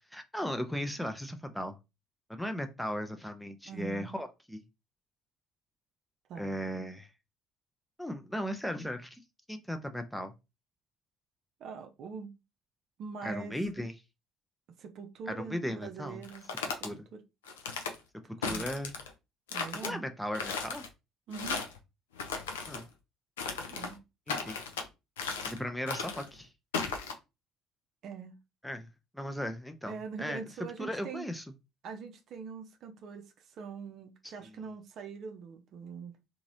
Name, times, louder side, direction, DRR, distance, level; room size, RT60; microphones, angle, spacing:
voice 1, 0.1-1.8 2.3-4.6 6.4-7.1 8.0-9.2 9.5-10.3 13.2-13.9 15.3-16.2 16.8-17.1 18.5-18.9 19.8-20.9 22.6-22.9 24.3-24.6 25.4-26.5 28.6-28.9 29.1-30.4 30.8-31.4, equal, 5° left, 0.5 m, -36 dB
voice 2, 3.6-4.2 6.3-6.7 11.6-12.3 13.0-13.6 14.8-16.5 17.1-17.2 18.4-18.7 19.5-20.0 21.3-21.6 23.7-24.0 28.0-28.4 29.9-31.3 31.8-36.2, right 6 dB, 50° right, 0.5 m, -43 dB
sound 1, 16.2-16.9 17.5-17.9 18.4-19.1 19.5-19.9 20.3-20.9 21.3-21.8 22.1-22.8 23.4-23.9 24.3-24.9 25.2-25.6 25.9-26.3 26.7-27.1, left 5 dB, 75° left, 0.5 m, -36 dB
2.9 x 2.6 x 2.7 m
figure-of-eight pair, 55°, 0 cm